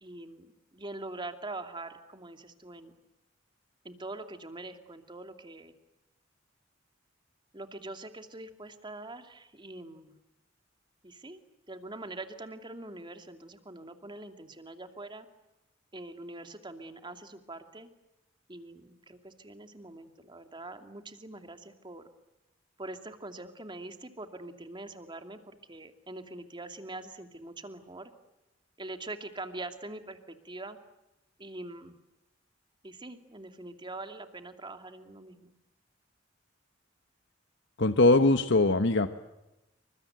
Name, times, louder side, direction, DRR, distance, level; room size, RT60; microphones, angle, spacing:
voice 1, 0.0-2.9 3.8-5.7 7.5-10.1 11.0-11.4 11.7-15.3 15.9-17.9 18.5-22.0 22.8-28.1 28.8-30.8 31.4-32.0 32.8-35.5, right 2 dB, 25° right, 7 dB, 2.6 m, -43 dB
voice 2, 37.8-39.1, left 2 dB, 65° left, 9 dB, 1.2 m, -21 dB
28.5 x 25.0 x 8.0 m, 0.94 s
head